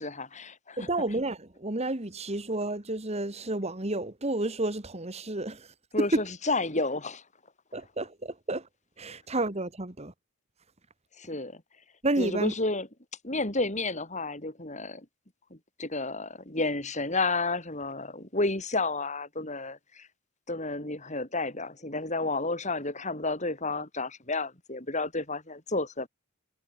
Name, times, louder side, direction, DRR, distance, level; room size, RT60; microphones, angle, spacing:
voice 1, 0.0-0.9 5.9-7.2 11.2-11.6 12.2-12.9 13.2-15.1 15.5-20.1 20.5-26.1, left 2 dB, 35° left, 5.3 m, -31 dB
voice 2, 0.8-6.2 7.7-8.7 9.0-10.1 12.0-12.5, right 2 dB, 30° right, 1.8 m, -31 dB
head